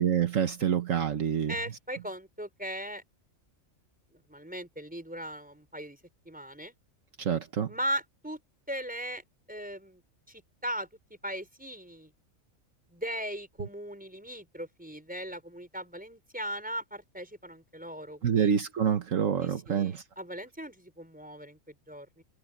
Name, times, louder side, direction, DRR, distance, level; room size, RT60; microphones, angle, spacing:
voice 1, 0.0-1.5 7.2-7.7 18.2-20.0, right 8 dB, 70° right, 1.5 m, -27 dB
voice 2, 1.5-3.0 4.1-6.0 6.2-6.7 7.7-8.4 8.7-10.0 10.3-10.9 11.2-12.1 12.9-18.5 19.4-22.2, equal, 5° right, 4.8 m, -38 dB
open air
omnidirectional pair, 1.4 m